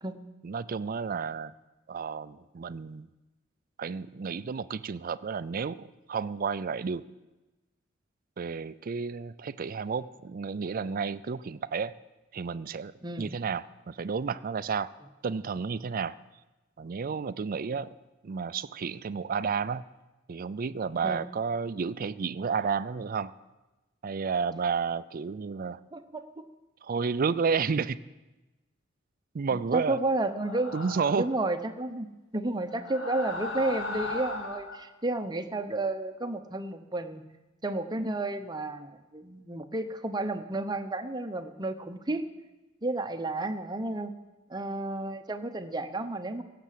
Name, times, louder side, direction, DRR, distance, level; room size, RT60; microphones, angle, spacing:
voice 1, 0.4-1.5 1.9-3.1 3.8-7.1 8.4-11.9 12.3-12.9 13.2-14.9 15.2-16.2 16.8-17.9 18.2-19.8 20.3-23.3 24.0-25.8 26.8-28.0 29.3-30.0 30.7-31.3, right 5 dB, 45° right, 15 dB, 0.4 m, -31 dB
voice 2, 13.0-13.3 21.0-21.2 25.9-26.4 29.5-30.7 31.2-32.1 32.3-37.2 37.6-42.3 42.8-44.1 44.5-46.4, right 2 dB, 20° right, 7 dB, 0.8 m, -32 dB
sound 1, 30.2-31.4 32.7-34.8, left 2 dB, 70° left, 1.5 m, -37 dB
16.5 x 6.7 x 7.6 m, 1.1 s
head